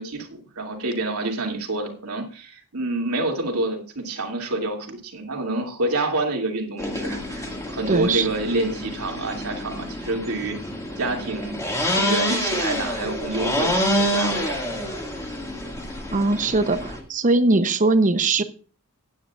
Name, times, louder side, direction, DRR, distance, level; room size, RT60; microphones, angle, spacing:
voice 1, 0.0-10.6 11.0-11.5 11.8-14.8, right 2 dB, 85° right, 1 dB, 2.7 m, -28 dB
sound 1, 6.8-17.0, equal, 15° left, 2.1 m, -27 dB
voice 2, 7.9-8.3 16.1-18.4, right 3 dB, 35° right, 10 dB, 0.8 m, -20 dB
15.5 x 9.5 x 2.5 m, 0.37 s
head